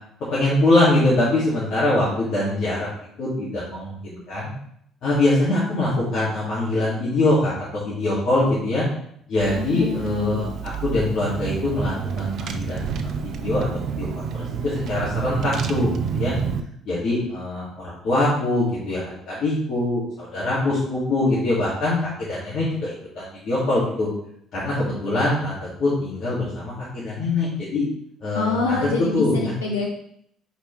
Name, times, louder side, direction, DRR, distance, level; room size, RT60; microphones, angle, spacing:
voice 1, 0.3-2.9 3.2-4.5 5.0-8.8 9.3-14.3 14.6-16.3 16.8-24.1 24.5-27.8 28.2-28.8 29.1-29.4, left 2 dB, 60° left, -9 dB, 2.5 m, -23 dB
Car / Engine, 9.4-16.6, right 6 dB, 60° right, 0.5 m, -29 dB
voice 2, 9.5-10.4 28.3-29.9, left 3 dB, 85° left, -2 dB, 0.7 m, -26 dB
6.7 x 4.7 x 3.3 m, 0.68 s
hypercardioid pair, 50°, 0 cm